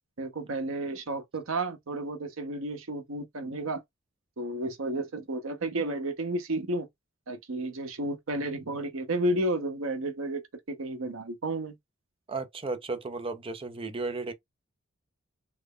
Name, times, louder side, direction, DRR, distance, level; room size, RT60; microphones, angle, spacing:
voice 1, 0.2-3.8 4.4-6.9 7.3-10.4 10.7-11.8, right 1 dB, 75° right, 0.8 m, -32 dB
voice 2, 12.3-14.3, right 3 dB, 25° right, 0.5 m, -34 dB
3.2 x 2.1 x 3.7 m
head